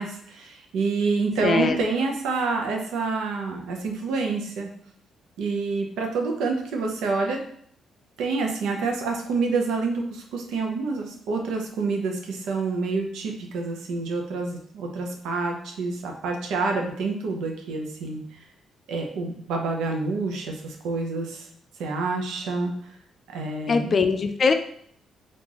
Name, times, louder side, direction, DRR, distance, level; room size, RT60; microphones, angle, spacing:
voice 1, 0.0-4.7 5.4-7.4 8.2-18.2 18.9-21.4 21.8-22.7 23.3-24.0, right 4 dB, 85° right, 2 dB, 0.7 m, -27 dB
voice 2, 1.4-1.8 23.7-24.5, left 4 dB, 45° left, 7 dB, 0.4 m, -21 dB
3.7 x 2.6 x 3.0 m, 0.64 s
cardioid pair, 90°, 0 cm